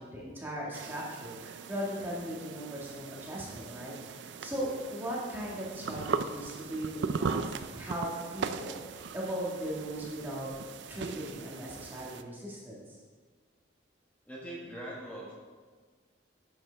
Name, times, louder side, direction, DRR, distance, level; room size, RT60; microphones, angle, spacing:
voice 1, 0.0-10.5 10.9-13.0, equal, 10° right, -5 dB, 1.6 m, -38 dB
sound 1, 0.7-12.2, right 5 dB, 70° right, 0.4 m, -39 dB
voice 2, 14.3-15.3, right 1 dB, 10° left, -5 dB, 1.5 m, -41 dB
11.5 x 7.3 x 3.4 m, 1.5 s
head